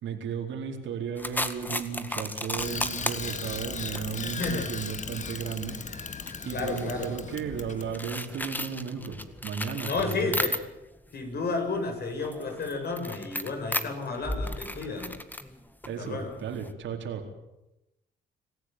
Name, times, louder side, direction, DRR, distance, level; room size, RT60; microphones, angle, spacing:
voice 1, 0.0-5.8 6.4-9.2 9.4-10.3 15.9-17.2, right 7 dB, 70° right, 3 dB, 4.3 m, -34 dB
sound 1, 1.2-11.0 11.3-16.7, left 1 dB, 10° left, 1.9 m, -36 dB
Bicycle, 2.6-8.1, left 5 dB, 35° left, 2.0 m, -37 dB
voice 2, 4.4-4.7 6.5-7.1 9.8-10.5 11.1-15.2 16.0-16.3, left 3 dB, 55° left, 4 dB, 7.3 m, -32 dB
26.0 x 15.0 x 9.3 m, 0.91 s
cardioid pair, 90°, 20 cm